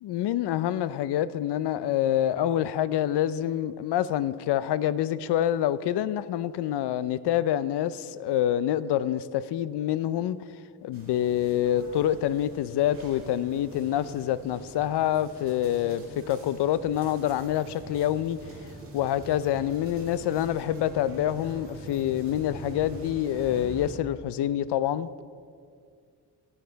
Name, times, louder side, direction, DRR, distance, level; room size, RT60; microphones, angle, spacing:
voice 1, 0.0-10.4 10.8-18.4 18.9-25.1, left 11 dB, 80° left, 0.5 m, -26 dB
sound 1, 10.9-23.9, right 1 dB, 35° right, 2.1 m, -44 dB
14.5 x 8.8 x 4.5 m
wide cardioid pair, 180°, 40 cm